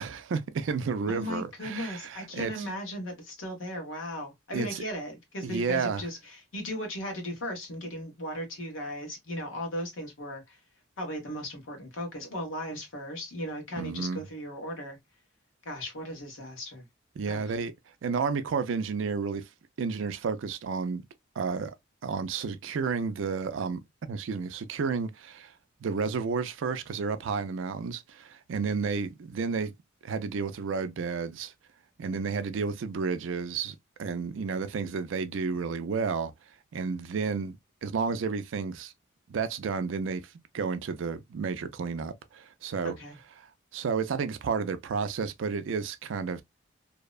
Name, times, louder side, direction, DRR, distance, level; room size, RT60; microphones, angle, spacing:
voice 1, 0.0-2.5 4.5-4.8 5.4-6.0 13.8-14.2 17.2-17.7 18.0-19.5 19.8-21.1 21.4-21.7 22.0-23.8 24.1-25.5 25.8-29.7 30.0-31.5 32.0-36.3 36.7-37.5 37.8-38.9 39.3-43.0 43.7-46.4, right 5 dB, 75° right, 0.4 m, -31 dB
voice 2, 1.1-10.6 11.0-15.0 15.6-16.8 17.3-17.5 42.8-43.2, equal, 90° left, 1.1 m, -37 dB
2.7 x 2.1 x 2.2 m
head